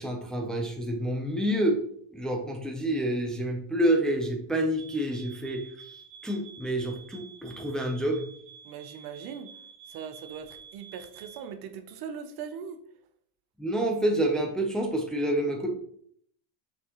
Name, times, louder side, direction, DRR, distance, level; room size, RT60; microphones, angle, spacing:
voice 1, 0.0-1.8 2.1-5.7 6.2-8.2 13.6-15.7, right 1 dB, ahead, 0.6 m, -28 dB
sound 1, 4.8-11.5, right 7 dB, 65° right, 1.5 m, -50 dB
voice 2, 8.6-9.5 9.9-12.8, right 7 dB, 50° right, 0.7 m, -40 dB
6.1 x 5.9 x 3.0 m
cardioid pair, 145°, 50 cm